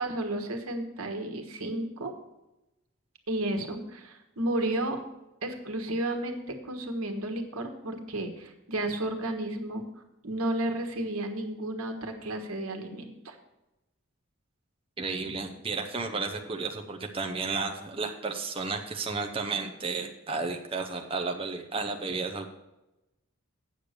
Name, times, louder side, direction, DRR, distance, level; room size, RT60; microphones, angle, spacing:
voice 1, 0.0-2.1 3.3-5.0 5.4-9.8 10.2-13.4, right 1 dB, 90° right, 5 dB, 1.4 m, -32 dB
voice 2, 15.0-22.5, right 4 dB, 25° right, 4 dB, 0.7 m, -33 dB
8.7 x 6.6 x 6.6 m, 0.96 s
head